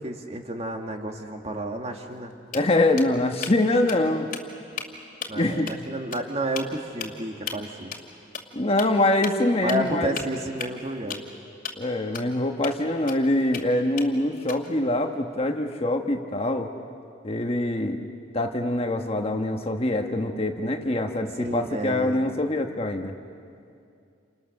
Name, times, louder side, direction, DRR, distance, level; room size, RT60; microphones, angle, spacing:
voice 1, 0.0-2.3 5.3-8.0 9.6-11.3 21.4-22.2, right 1 dB, 35° right, 3 dB, 1.9 m, -31 dB
sound 1, 2.1-2.3 2.5-3.6 3.9-4.0 4.3-4.9 5.2-5.4 5.7-5.8 6.1-6.2 6.6-6.7 7.0-7.1 7.5-7.6 7.9-8.1 8.3-8.4 8.8-8.9 9.2-9.3 9.7-9.9 10.2-11.3 11.6-11.7 12.1-12.2 12.6-12.7 13.1-13.6 14.0-14.8, left 7 dB, 50° left, 2.4 m, -35 dB
voice 2, 2.5-4.3 5.3-5.7 8.5-10.1 11.8-16.7 17.2-18.0 18.3-23.1, left 1 dB, 30° left, 5 dB, 1.3 m, -24 dB
29.5 x 28.5 x 6.6 m, 2.4 s
head